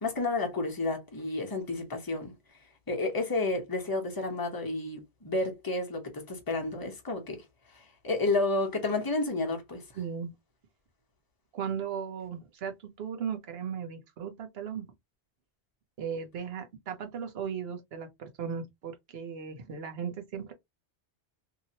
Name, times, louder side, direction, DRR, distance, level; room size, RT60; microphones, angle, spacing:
voice 1, 0.0-2.3 2.9-7.4 8.0-9.8, left 3 dB, 20° left, 0.9 m, -31 dB
voice 2, 10.0-10.3 11.5-14.9 16.0-20.5, right 7 dB, 65° right, 1.0 m, -37 dB
2.8 x 2.7 x 2.8 m
omnidirectional pair, 1.1 m